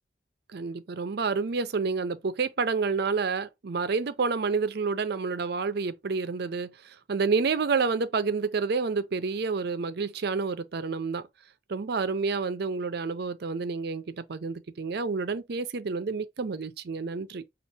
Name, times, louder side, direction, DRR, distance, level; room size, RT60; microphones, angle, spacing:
voice 1, 0.5-11.2 11.7-17.4, right 4 dB, 55° right, 0.5 m, -29 dB
5.4 x 2.4 x 2.7 m
head